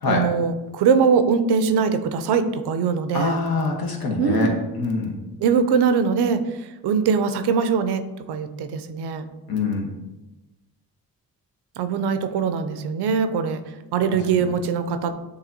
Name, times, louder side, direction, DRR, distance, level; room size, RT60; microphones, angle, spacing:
voice 1, 0.0-3.4 4.2-4.6 5.4-8.0 8.3-9.3 11.8-13.6 13.9-15.3, right 6 dB, 85° right, 9 dB, 0.5 m, -22 dB
voice 2, 3.1-4.5 4.8-5.1 9.5-9.9 14.1-14.5, left 3 dB, 65° left, 1 dB, 1.1 m, -24 dB
6.8 x 2.8 x 2.6 m, 1.1 s
cardioid pair, 60°, 39 cm